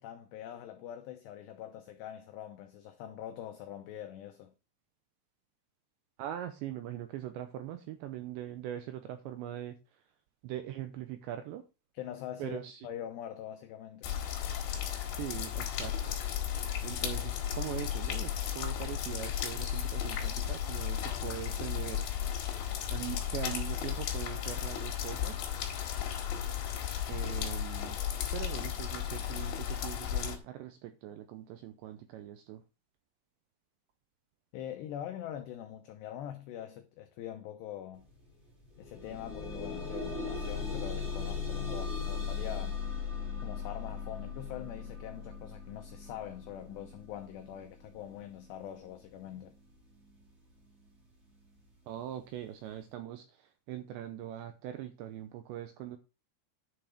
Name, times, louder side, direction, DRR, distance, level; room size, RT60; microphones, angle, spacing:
voice 1, 0.0-4.5 11.9-14.1 34.5-38.1 38.8-42.8 43.4-49.5, left 10 dB, 85° left, 2.4 m, -43 dB
voice 2, 6.2-9.8 10.4-11.6 12.4-12.8 15.2-16.2 16.8-22.1 22.9-25.5 27.1-28.0 28.3-32.6 51.9-56.0, right 12 dB, 80° right, 2.6 m, -41 dB
sound 1, 14.0-30.4, left 10 dB, 65° left, 3.7 m, -34 dB
sound 2, 38.0-38.1 38.5-49.5 50.3-50.4 50.9-51.0, left 5 dB, 25° right, 1.6 m, -38 dB
10.5 x 5.8 x 4.9 m
omnidirectional pair, 5.9 m